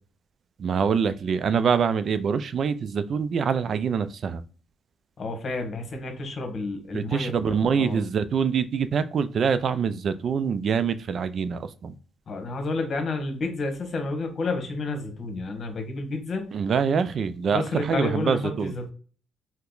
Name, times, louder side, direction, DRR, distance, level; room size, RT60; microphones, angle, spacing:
voice 1, 0.6-4.4 6.9-11.9 16.5-18.7, right 6 dB, 55° right, 0.3 m, -25 dB
voice 2, 5.2-7.3 7.7-8.0 12.3-16.5 17.5-18.9, left 3 dB, 50° left, 1.1 m, -30 dB
2.8 x 2.1 x 3.8 m
cardioid pair, 90°, 0 cm